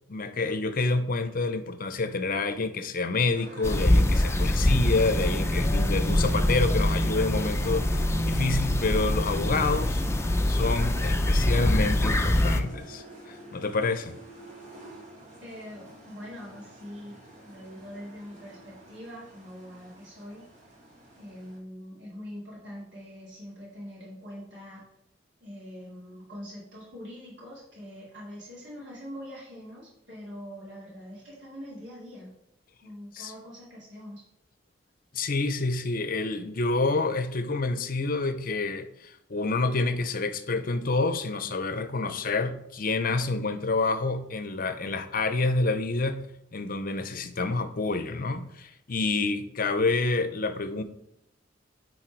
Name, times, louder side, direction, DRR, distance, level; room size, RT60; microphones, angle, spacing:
voice 1, 0.1-14.1 33.1-33.3 35.1-46.2 46.5-50.8, left 3 dB, 50° left, 11 dB, 0.7 m, -28 dB
sound 1, 3.3-21.6, right 1 dB, 40° right, 2.1 m, -49 dB
sound 2, 3.6-12.6, left 1 dB, 15° left, 0.5 m, -24 dB
voice 2, 15.4-17.2 17.4-20.4 21.2-24.9 25.4-32.3 32.8-34.2, equal, 70° right, -6 dB, 2.5 m, -43 dB
9.0 x 4.2 x 4.5 m, 0.77 s
head